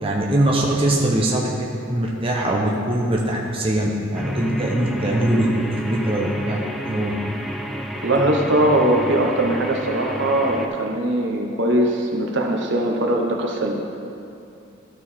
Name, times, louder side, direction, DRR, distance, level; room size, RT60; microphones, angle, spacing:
voice 1, 0.0-6.6 6.9-7.1, right 1 dB, 25° right, -2 dB, 0.8 m, -22 dB
sound 1, 4.1-10.7, equal, ahead, 0.4 m, -30 dB
voice 2, 8.0-13.7, right 1 dB, 60° right, 1 dB, 0.9 m, -20 dB
13.0 x 4.7 x 4.2 m, 2.7 s
head